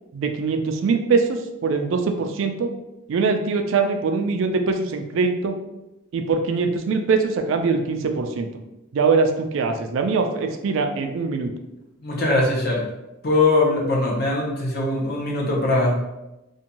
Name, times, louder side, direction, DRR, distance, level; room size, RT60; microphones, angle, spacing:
voice 1, 0.1-2.7 3.1-5.5 6.1-8.5 8.9-11.5, right 4 dB, 70° right, 5 dB, 0.3 m, -22 dB
voice 2, 12.0-12.8 13.2-16.0, left 2 dB, 50° left, -2 dB, 0.6 m, -21 dB
2.6 x 2.2 x 2.8 m, 0.96 s
head